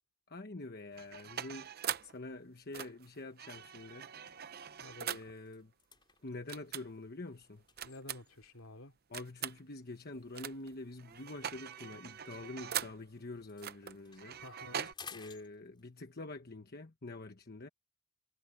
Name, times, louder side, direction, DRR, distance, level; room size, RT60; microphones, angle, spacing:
voice 1, 0.3-1.7 2.0-4.1 5.0-5.7 6.2-7.6 9.1-14.4 15.1-17.7, left 2 dB, 45° left, 1.2 m, -46 dB
sound 1, 0.9-2.2 2.7-5.4 6.5-6.8 7.8-8.4 9.1-9.6 10.3-10.7 11.0-13.0 13.6-14.9, right 9 dB, 45° right, 0.7 m, -42 dB
sound 2, 4.3-4.4 4.6-8.6 9.4-13.0 13.3-16.1, left 5 dB, 20° left, 3.7 m, -58 dB
voice 2, 4.6-5.3 7.8-9.0 14.4-14.9, left 2 dB, 70° left, 3.0 m, -51 dB
head